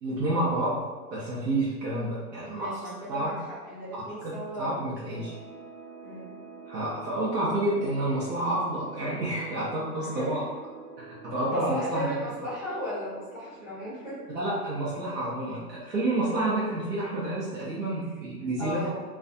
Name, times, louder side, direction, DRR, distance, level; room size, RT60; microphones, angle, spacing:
voice 1, 0.0-2.8 3.1-3.3 4.2-4.3 4.6-5.3 6.7-10.5 11.0-12.1 14.3-18.9, right 1 dB, 85° right, -7 dB, 0.8 m, -29 dB
voice 2, 2.5-3.3 3.7-4.9 6.0-6.3 10.0-10.4 11.5-14.2 18.6-19.0, equal, ahead, -17 dB, 0.4 m, -35 dB
sound 1, 5.1-14.4, right 5 dB, 50° right, 0.9 m, -46 dB
2.4 x 2.3 x 2.5 m, 1.4 s
hypercardioid pair, 120°, 49 cm